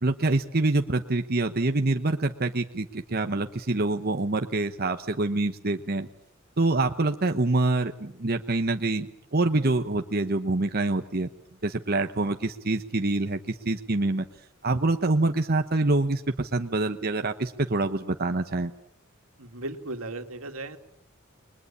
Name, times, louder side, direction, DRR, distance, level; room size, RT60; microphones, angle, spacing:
voice 1, 0.0-6.1 6.6-11.3 11.6-14.2 14.6-18.7, right 2 dB, 45° right, 6 dB, 1.1 m, -26 dB
voice 2, 19.4-20.8, right 2 dB, 85° right, 6 dB, 2.5 m, -36 dB
29.5 x 22.0 x 8.7 m, 0.74 s
head